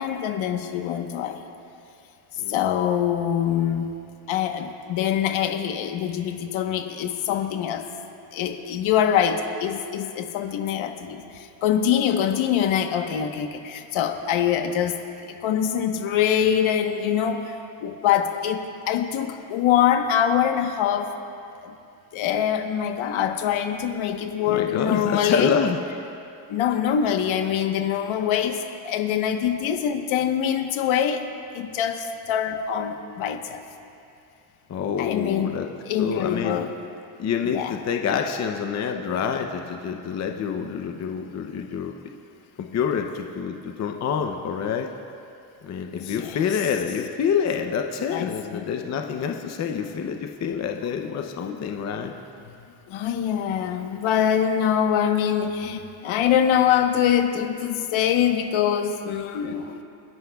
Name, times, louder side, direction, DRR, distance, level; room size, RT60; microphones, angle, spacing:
voice 1, 0.0-1.4 2.5-3.9 4.3-7.9 8.3-21.1 21.6-21.7 22.1-25.6 26.5-31.3 31.5-33.6 35.0-35.5 35.8-36.7 37.4-37.8 45.9-46.8 48.1-48.7 52.9-59.8, left 9 dB, 70° left, 5 dB, 1.2 m, -24 dB
voice 2, 24.4-25.8 34.7-35.7 36.0-36.6 37.2-41.9 42.6-44.9 45.6-52.1, left 7 dB, 35° left, 4 dB, 0.6 m, -27 dB
29.0 x 11.0 x 2.3 m, 2.6 s
cardioid pair, 145°, 49 cm